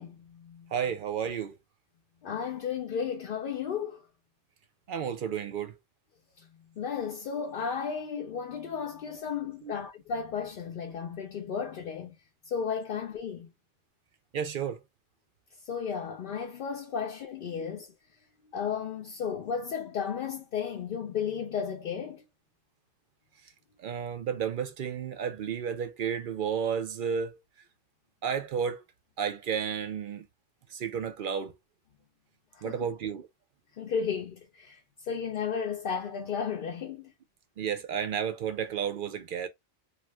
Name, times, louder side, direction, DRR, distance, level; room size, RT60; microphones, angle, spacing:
voice 1, 0.0-0.7 2.2-4.0 6.8-12.1 12.5-13.5 15.7-17.9 18.5-22.2 32.6-32.9 33.8-34.8 35.1-37.1, left 6 dB, 60° left, 0.6 m, -34 dB
voice 2, 0.7-1.6 4.9-5.8 9.6-9.7 14.3-14.8 23.8-27.4 28.2-28.8 29.2-30.3 30.7-31.5 32.6-33.3 37.6-39.5, right 7 dB, 60° right, 0.6 m, -32 dB
2.5 x 2.3 x 3.2 m
omnidirectional pair, 1.2 m